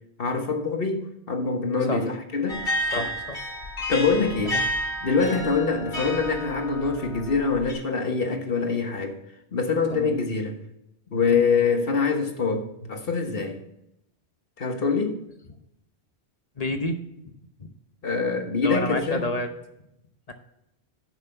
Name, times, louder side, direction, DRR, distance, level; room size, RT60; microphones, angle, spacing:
voice 1, 0.2-2.6 3.0-3.1 3.9-4.6 5.0-9.2 9.5-10.6 11.1-13.6 14.6-15.2 18.0-19.3, left 4 dB, 55° left, 1.5 m, -25 dB
sound 1, 2.5-7.7, equal, 85° left, 2.9 m, -31 dB
voice 2, 2.9-3.4 4.5-4.6 5.0-5.2 9.9-10.2 11.3-11.5 16.6-17.0 17.6-17.7 18.6-19.5 20.3-20.4, left 2 dB, 35° left, 1.0 m, -29 dB
11.0 x 6.1 x 5.8 m
omnidirectional pair, 1.1 m